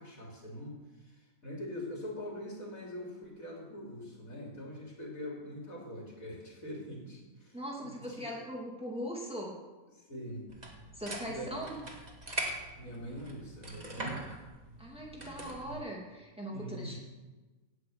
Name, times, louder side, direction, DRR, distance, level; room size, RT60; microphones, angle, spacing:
voice 1, 0.0-8.4 9.9-10.5 11.2-11.6 12.8-14.3 15.6-15.8 16.5-17.0, equal, 70° left, -2 dB, 3.8 m, -43 dB
voice 2, 7.5-9.5 10.9-11.8 14.0-14.1 14.8-17.0, equal, 5° right, -3 dB, 2.9 m, -40 dB
sound 1, 10.5-15.7, right 1 dB, 30° right, 2.1 m, -42 dB
17.5 x 6.2 x 8.1 m, 1.2 s
omnidirectional pair, 1.5 m